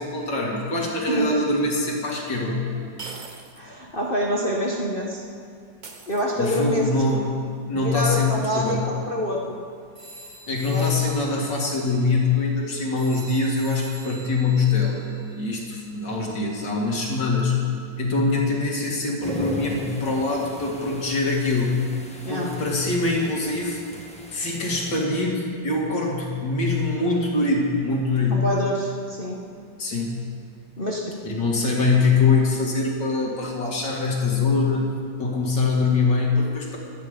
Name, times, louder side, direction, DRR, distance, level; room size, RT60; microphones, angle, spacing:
voice 1, 0.0-2.7 6.4-7.4 7.7-8.8 10.5-17.6 18.0-21.8 22.3-23.8 24.3-28.4 29.8-30.2 31.3-34.9 35.2-36.8, left 3 dB, 65° left, -1 dB, 2.9 m, -23 dB
sound 1, 1.6-1.7 3.0-3.7 4.0-4.1 5.8-6.7, right 3 dB, 40° right, 0.7 m, -41 dB
voice 2, 3.5-5.2 6.1-6.8 7.7-9.6 10.7-10.9 22.2-22.5 28.3-29.4 30.8-31.1, equal, 30° left, -2 dB, 1.3 m, -26 dB
sound 2, 9.9-16.1, right 2 dB, 70° right, 5.1 m, -46 dB
sound 3, 19.2-25.0, equal, 5° left, 1.3 m, -38 dB
24.0 x 9.2 x 5.2 m, 2.2 s
omnidirectional pair, 2.1 m